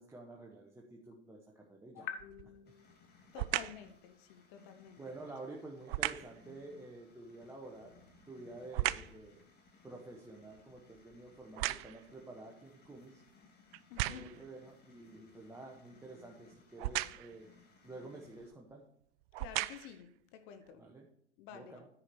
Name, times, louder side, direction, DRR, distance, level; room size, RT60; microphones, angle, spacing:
voice 1, 0.0-2.1 2.6-2.7 5.0-8.0 8.3-9.4 9.8-13.2 14.1-17.5 17.8-18.9 20.8-21.1 21.5-21.9, right 2 dB, 5° right, -2 dB, 1.0 m, -50 dB
voice 2, 1.9-3.1 3.3-5.2 13.9-14.3 19.4-20.8 21.4-21.8, left 8 dB, 50° left, 9 dB, 1.1 m, -49 dB
sound 1, 2.2-2.6 3.3-3.9 5.9-6.4 7.8-9.2 9.7-12.2 12.9-13.0 13.7-14.5 16.8-17.4 18.4-18.5 19.2-20.0 20.7-20.8, right 17 dB, 55° right, 0.5 m, -37 dB
sound 2, 2.6-18.5, left 5 dB, 25° left, 1.9 m, -64 dB
10.0 x 4.9 x 6.0 m, 0.72 s
hypercardioid pair, 120°, 36 cm